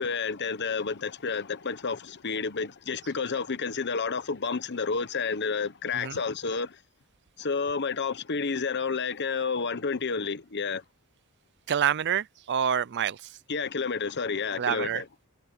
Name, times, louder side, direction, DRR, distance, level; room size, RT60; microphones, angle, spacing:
voice 1, 0.0-6.8 7.4-10.8 13.5-15.0, left 5 dB, 50° left, 1.0 m, -30 dB
voice 2, 11.7-13.3 14.6-15.0, right 8 dB, 50° right, 0.5 m, -27 dB
head